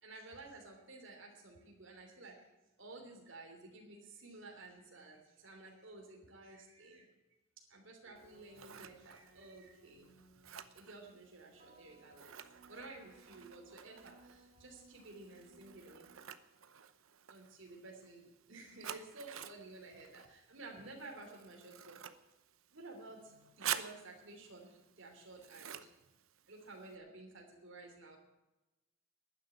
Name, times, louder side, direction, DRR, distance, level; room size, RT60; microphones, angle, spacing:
voice 1, 0.0-2.4 2.8-7.1 7.7-10.1 10.7-12.3 12.7-16.1 17.3-22.0 22.7-25.9 26.5-28.2, right 2 dB, 65° right, 1 dB, 3.0 m, -53 dB
sound 1, 8.0-16.2, right 2 dB, 45° right, 3.1 m, -65 dB
Scissors, 8.2-27.0, right 10 dB, 85° right, 0.9 m, -49 dB
12.0 x 10.0 x 9.6 m, 1.0 s
head